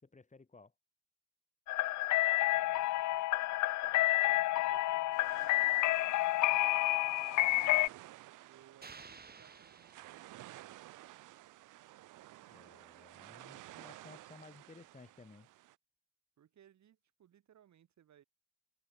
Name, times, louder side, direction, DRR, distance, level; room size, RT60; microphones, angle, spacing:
voice 1, 0.0-0.7 12.5-15.5, left 3 dB, 25° left, 6.5 m, -57 dB
sound 1, 1.7-7.9, left 17 dB, 75° left, 0.5 m, -30 dB
voice 2, 2.6-3.2 3.8-7.7 8.4-11.1 16.4-18.2, right 10 dB, 65° right, 7.0 m, -65 dB
sound 2, 5.1-15.8, right 16 dB, 90° right, 2.3 m, -54 dB
sound 3, 8.8-11.0, right 5 dB, 30° right, 2.0 m, -55 dB
open air
cardioid pair, 90°, 30 cm